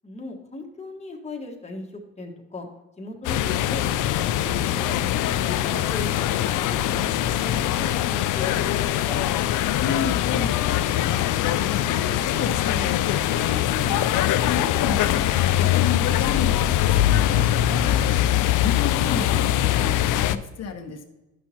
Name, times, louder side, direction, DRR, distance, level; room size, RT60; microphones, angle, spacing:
voice 1, 0.0-1.9 2.2-2.7 3.0-5.0 5.4-8.0 8.3-9.2, left 2 dB, 20° left, 1 dB, 1.6 m, -37 dB
sound 1, 3.2-20.4, left 12 dB, 85° left, 0.5 m, -22 dB
voice 2, 9.7-11.1 11.4-14.1 14.4-18.1 18.5-21.0, left 5 dB, 55° left, 2 dB, 1.3 m, -32 dB
12.0 x 6.0 x 2.9 m, 1.1 s
cardioid pair, 90°, 30 cm